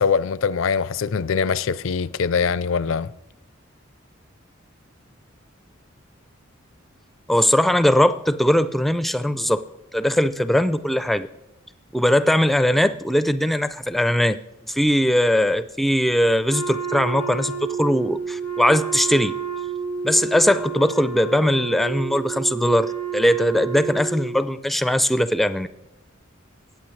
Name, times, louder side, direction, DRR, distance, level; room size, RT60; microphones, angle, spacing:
voice 1, 0.0-3.1, left 6 dB, 75° left, 0.5 m, -22 dB
voice 2, 7.3-9.6 9.9-11.3 11.9-14.4 14.7-19.3 20.0-25.7, equal, ahead, 0.4 m, -20 dB
Wind instrument woodwind instrument, 16.5-24.4, right 6 dB, 80° right, 3.0 m, -30 dB
21.0 x 8.9 x 3.2 m
head